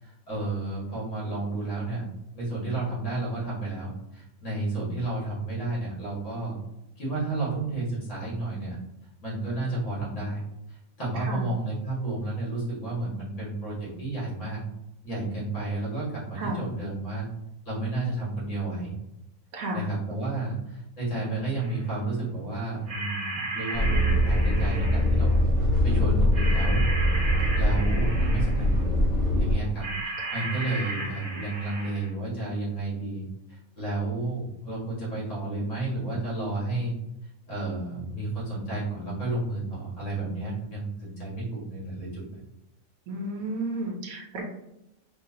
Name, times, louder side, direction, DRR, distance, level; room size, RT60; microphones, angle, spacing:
voice 1, 0.0-2.0 2.3-6.6 7.0-8.8 9.2-10.4 10.7-14.6 15.0-17.3 17.6-18.9 19.7-25.4 25.8-26.9 27.6-28.7 29.3-33.2 33.5-36.9 37.5-42.4, right 2 dB, 60° left, -7 dB, 2.0 m, -31 dB
voice 2, 19.5-19.8 30.2-30.5 43.1-44.4, right 1 dB, 75° right, -2 dB, 1.1 m, -32 dB
sound 1, 21.6-21.8 22.9-25.2 26.3-28.8 29.8-32.1, right 2 dB, 35° right, 0.6 m, -35 dB
sound 2, 23.7-29.5, equal, 35° left, 1.3 m, -23 dB
4.7 x 2.3 x 2.8 m, 0.87 s
omnidirectional pair, 1.4 m